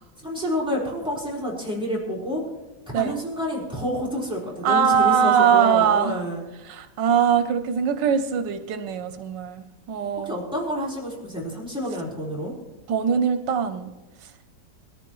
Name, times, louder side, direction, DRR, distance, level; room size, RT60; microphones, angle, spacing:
voice 1, 0.2-2.4 2.9-6.4 10.2-12.5, equal, 5° right, -6 dB, 4.2 m, -29 dB
voice 2, 4.6-6.2 6.6-10.4 12.9-13.9, right 7 dB, 85° right, 9 dB, 1.4 m, -21 dB
21.5 x 14.0 x 3.1 m, 1.1 s
omnidirectional pair, 1.9 m